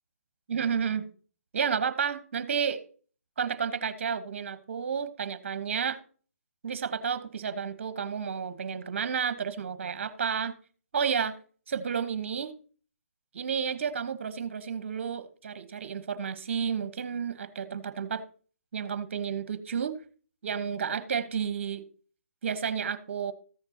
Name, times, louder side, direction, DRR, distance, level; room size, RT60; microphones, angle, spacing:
voice 1, 0.5-1.1 1.5-2.8 3.4-6.0 6.6-10.5 10.9-11.4 11.7-12.5 13.3-18.2 18.7-20.0 20.4-21.9 22.4-23.3, right 7 dB, 50° right, 1.1 m, -31 dB
14.5 x 6.6 x 2.8 m
figure-of-eight pair, 150°, 8 cm